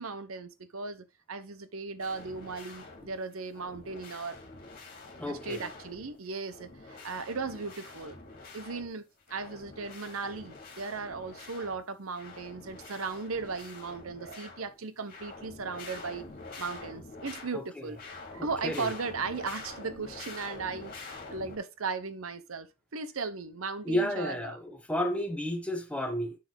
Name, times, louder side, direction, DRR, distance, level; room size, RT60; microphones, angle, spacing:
voice 1, 0.0-4.4 5.2-8.2 8.5-9.0 9.3-16.2 16.6-18.0 18.3-24.6, right 4 dB, 90° right, 0.9 m, -37 dB
sound 1, 2.0-3.2 3.5-6.2 6.5-8.9 9.2-11.8 12.1-14.8 15.1-17.5 17.9-21.6, left 3 dB, 45° left, 2.6 m, -46 dB
voice 2, 5.2-5.7 17.5-17.9 18.4-18.9 23.8-26.4, equal, 5° left, 1.3 m, -32 dB
7.8 x 6.0 x 3.5 m
head